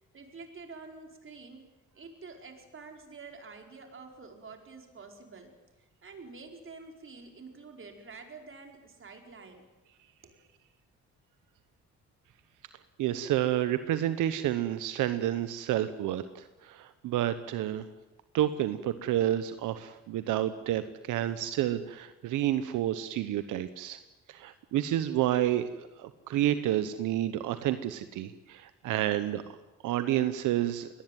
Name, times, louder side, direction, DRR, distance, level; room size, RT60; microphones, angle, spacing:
voice 1, 0.0-1.6 1.9-9.6 10.2-10.4, right 4 dB, 45° right, 4 dB, 4.7 m, -48 dB
voice 2, 13.0-17.9 18.3-24.0 24.3-25.7 26.0-29.6 29.8-30.9, right 12 dB, 90° right, 11 dB, 1.1 m, -29 dB
22.0 x 19.0 x 9.2 m, 1.0 s
cardioid pair, 90°, 30 cm